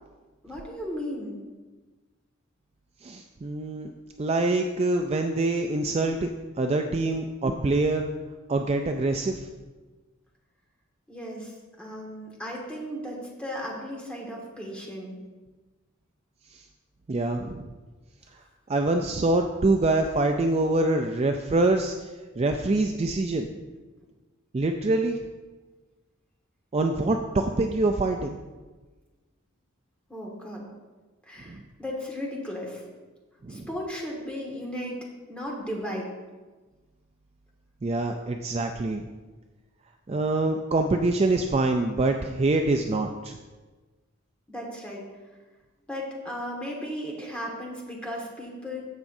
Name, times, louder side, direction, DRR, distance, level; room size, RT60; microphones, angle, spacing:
voice 1, 0.4-1.4 11.1-15.2 30.1-30.7 31.2-32.8 33.5-36.1 44.5-45.0 45.9-48.8, equal, 5° left, -2 dB, 1.7 m, -35 dB
voice 2, 3.0-3.9 4.2-6.3 6.6-8.1 8.5-9.4 16.5-16.6 17.1-17.7 18.7-21.9 22.4-23.5 24.5-25.2 26.7-28.4 31.5-31.6 33.4-33.7 37.8-39.0 40.1-43.4, right 2 dB, 30° right, 4 dB, 0.4 m, -25 dB
15.5 x 6.0 x 2.7 m, 1.3 s
head